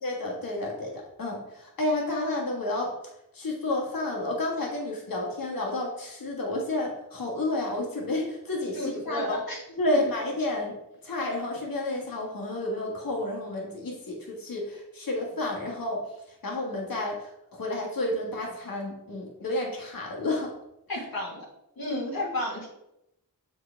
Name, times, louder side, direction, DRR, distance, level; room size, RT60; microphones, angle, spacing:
voice 1, 0.0-2.9 3.3-9.4 9.8-10.8 11.0-16.0 16.4-20.5 20.9-21.0 22.1-22.3, left 2 dB, 70° left, -2 dB, 1.7 m, -31 dB
voice 2, 8.7-9.6 20.9-21.4 21.8-22.7, left 1 dB, 90° left, -5 dB, 1.7 m, -32 dB
6.8 x 4.7 x 3.5 m, 0.83 s
wide cardioid pair, 65°, 35 cm